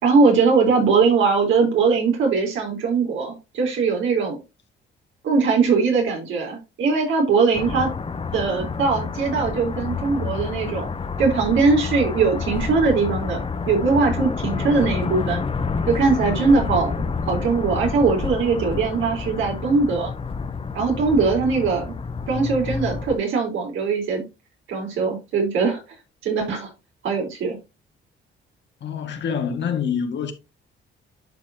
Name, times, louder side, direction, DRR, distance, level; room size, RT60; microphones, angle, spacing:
voice 1, 0.0-4.4 5.2-7.9 8.3-10.9 11.2-15.4 15.9-20.1 20.7-21.9 22.3-24.2 24.7-25.8 26.2-26.7 27.0-27.6, right 4 dB, 80° right, 4.0 m, -21 dB
sound 1, 7.5-23.2, left 5 dB, 30° left, 0.8 m, -28 dB
voice 2, 28.8-30.3, left 7 dB, 65° left, 2.0 m, -26 dB
11.5 x 5.0 x 2.9 m
cardioid pair, 90°, 20 cm